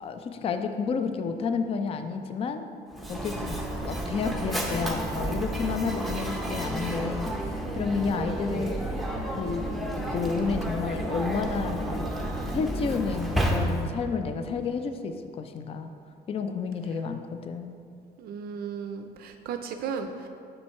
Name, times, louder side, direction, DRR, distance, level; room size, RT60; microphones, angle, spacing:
voice 1, 0.0-2.7 3.1-7.3 7.8-8.8 9.4-12.1 12.5-15.9 16.3-17.7, left 5 dB, 35° left, 8 dB, 0.4 m, -31 dB
Mechanisms, 2.9-14.1, right 1 dB, ahead, 0.7 m, -31 dB
voice 2, 18.2-20.3, right 6 dB, 65° right, 6 dB, 0.4 m, -35 dB
6.3 x 4.4 x 4.3 m, 2.4 s
cardioid pair, 110°, 17 cm